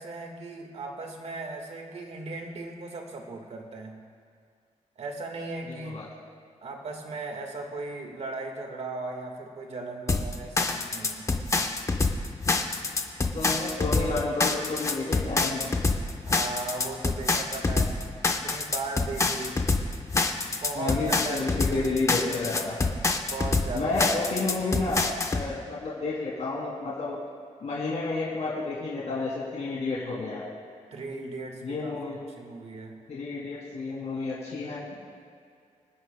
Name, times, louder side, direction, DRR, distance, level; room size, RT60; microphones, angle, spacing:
voice 1, 0.0-4.0 5.0-6.0 6.6-11.3 16.3-18.0 18.3-19.6 20.5-21.9 23.2-24.0 30.9-33.0, right 3 dB, 60° right, 2 dB, 1.6 m, -37 dB
voice 2, 5.7-6.0 13.3-15.7 20.8-22.8 23.7-27.2 27.6-30.5 31.6-32.2 33.1-35.0, left 3 dB, 60° left, -6 dB, 2.5 m, -31 dB
sound 1, 10.1-25.5, left 3 dB, 25° left, 0.8 m, -26 dB
26.0 x 10.5 x 2.2 m, 2.3 s
wide cardioid pair, 150°, 13 cm